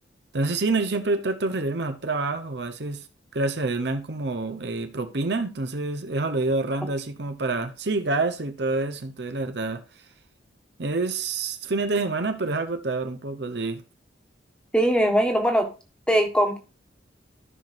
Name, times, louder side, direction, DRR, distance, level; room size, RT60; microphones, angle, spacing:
voice 1, 0.3-3.1 3.3-9.8 10.8-13.8, right 3 dB, 60° right, 0.8 m, -27 dB
voice 2, 14.7-15.7 16.1-16.6, equal, 5° left, 1.4 m, -20 dB
14.0 x 5.8 x 2.6 m
head